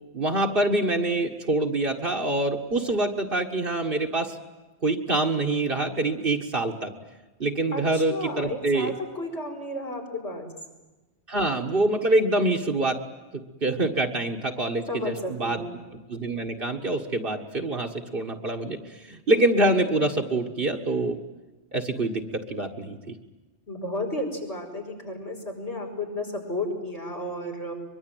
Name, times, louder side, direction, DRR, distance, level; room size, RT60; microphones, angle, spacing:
voice 1, 0.1-4.4 4.8-6.9 7.4-8.9 11.3-13.0 13.3-15.6 16.1-21.2 21.7-23.2, right 2 dB, 50° right, 2 dB, 1.9 m, -25 dB
voice 2, 7.7-10.5 14.9-15.8 23.7-27.7, left 1 dB, 70° left, 1 dB, 5.8 m, -33 dB
23.5 x 23.0 x 9.2 m, 1.1 s
omnidirectional pair, 1.2 m